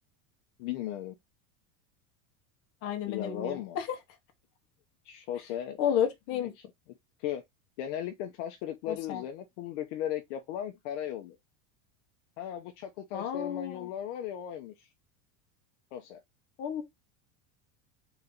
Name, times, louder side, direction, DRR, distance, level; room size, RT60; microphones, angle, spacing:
voice 1, 0.6-1.1 3.1-3.8 5.0-5.8 6.3-6.6 7.2-7.4 7.8-11.4 12.4-14.9 15.9-16.2, left 10 dB, 60° left, 0.7 m, -37 dB
voice 2, 2.8-3.9 5.8-6.5 8.9-9.2 13.1-13.9 16.6-16.8, left 9 dB, 35° left, 1.1 m, -31 dB
4.0 x 2.8 x 3.6 m
cardioid pair, 180°, 41 cm